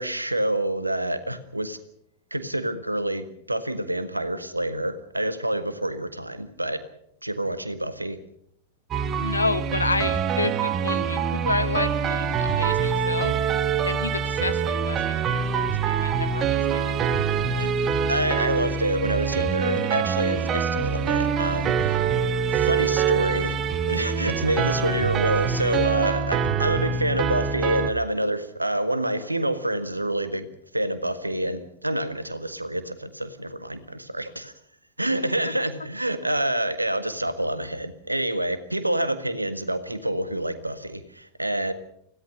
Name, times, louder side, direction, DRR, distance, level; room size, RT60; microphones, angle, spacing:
voice 1, 0.0-1.8 2.3-6.8 7.2-8.2 17.6-22.0 22.5-23.6 23.8-30.5 30.7-34.5 35.0-41.7, right 1 dB, 85° right, 12 dB, 1.6 m, -27 dB
sound 1, 8.9-27.9, right 7 dB, 30° right, 1.4 m, -25 dB
voice 2, 9.2-13.3 13.8-17.0, left 3 dB, 80° left, 13 dB, 1.1 m, -30 dB
25.5 x 17.0 x 6.5 m, 0.69 s
figure-of-eight pair, 90°, 0 cm